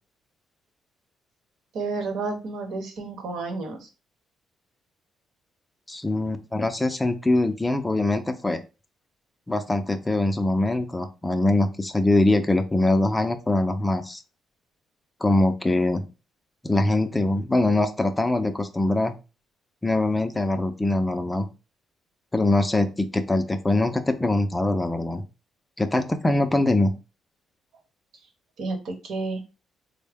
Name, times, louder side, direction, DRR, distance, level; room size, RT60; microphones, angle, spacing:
voice 1, 1.7-3.9 28.6-29.4, right 3 dB, 75° right, 3 dB, 1.0 m, -31 dB
voice 2, 5.9-8.6 9.5-14.2 15.2-16.0 16.6-19.2 19.8-21.5 22.3-25.2 25.8-26.9, left 2 dB, 15° left, 7 dB, 0.5 m, -23 dB
3.7 x 2.1 x 3.5 m, 0.30 s
cardioid pair, 90°, 0 cm